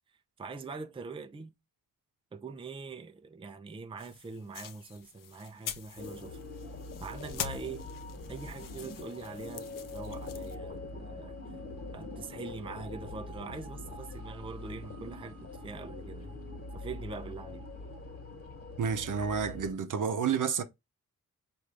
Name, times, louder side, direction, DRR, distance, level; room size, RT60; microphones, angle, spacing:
voice 1, 0.4-1.5 2.3-6.4 7.0-7.9 8.3-11.4 11.9-16.4 16.7-17.7, right 4 dB, 15° right, 0.4 m, -43 dB
sound 1, 4.0-10.5, left 8 dB, 70° left, 0.6 m, -44 dB
sound 2, 6.0-19.7, left 2 dB, 40° left, 1.4 m, -43 dB
voice 2, 18.8-20.6, right 6 dB, 65° right, 0.7 m, -30 dB
4.8 x 2.6 x 3.3 m
cardioid pair, 75°, 34 cm